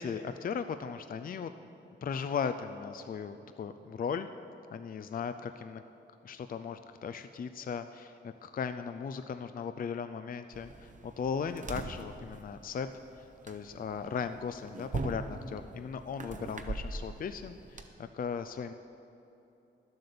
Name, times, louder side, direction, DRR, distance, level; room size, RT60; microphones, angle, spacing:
voice 1, 0.0-1.5 2.0-4.3 4.7-5.8 6.3-12.9 13.2-18.7, left 6 dB, 50° left, 10 dB, 0.4 m, -37 dB
sound 1, 10.5-17.9, right 3 dB, 40° right, 0.9 m, -41 dB
11.5 x 7.8 x 6.8 m, 2.9 s
cardioid pair, 90°, 19 cm